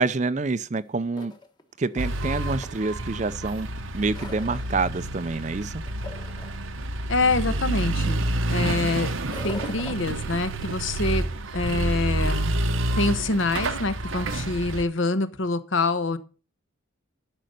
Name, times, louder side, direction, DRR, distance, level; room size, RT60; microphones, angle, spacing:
voice 1, 0.0-1.3 1.8-3.7 3.9-5.7, right 3 dB, 35° right, 0.5 m, -27 dB
sound 1, 0.8-0.9 1.1-3.0 3.5-4.8 5.2-5.6 5.9-6.6 7.3-7.4 7.8-8.1 9.2-10.8, left 2 dB, 20° left, 1.1 m, -42 dB
sound 2, 2.0-14.8, right 2 dB, 80° right, 0.9 m, -29 dB
voice 2, 7.1-9.1 9.4-11.2 11.5-12.5 13.0-16.2, left 3 dB, 70° left, 1.1 m, -26 dB
11.5 x 5.5 x 6.6 m
head